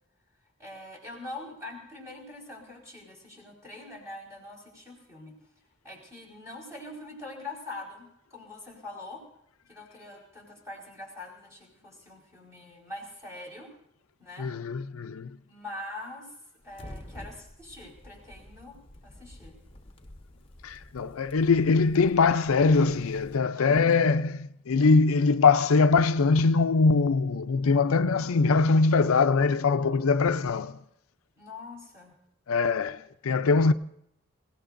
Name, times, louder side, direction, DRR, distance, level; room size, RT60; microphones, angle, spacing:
voice 1, 0.6-5.3 5.8-9.2 9.7-13.7 14.2-14.5 15.5-16.3 16.6-18.8 19.0-19.6 23.6-23.9 31.4-32.2, left 2 dB, 15° right, 4.7 m, -43 dB
voice 2, 14.4-15.4 20.6-30.8 32.5-33.7, left 4 dB, 90° left, 0.5 m, -22 dB
sound 1, 16.6-23.4, left 1 dB, 25° left, 1.0 m, -49 dB
27.0 x 17.0 x 2.6 m
head